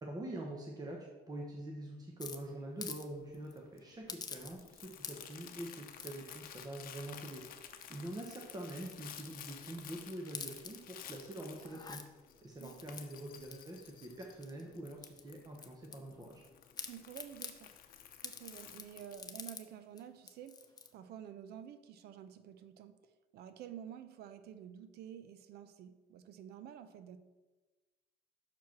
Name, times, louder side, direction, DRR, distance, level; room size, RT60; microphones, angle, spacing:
voice 1, 0.0-12.0 12.4-16.4, right 1 dB, 20° right, 0 dB, 1.0 m, -45 dB
sound 1, 2.2-3.1 3.3-3.5 4.1-4.7 5.0-5.4 6.0-6.3 6.9-7.3 7.7-9.9 10.2-11.1 11.6-12.0 12.6-14.6 15.0-16.5 16.8-17.6 18.2-19.6 20.0-20.1 20.3-20.9, left 5 dB, 25° left, 0.6 m, -48 dB
Crumpling crinkling, 2.8-19.2, left 9 dB, 60° left, 0.7 m, -54 dB
voice 2, 11.4-11.8 12.6-12.8 16.8-17.7 18.2-27.2, right 9 dB, 70° right, 11 dB, 0.6 m, -50 dB
6.0 x 4.7 x 5.9 m, 1.2 s
cardioid pair, 110°, 17 cm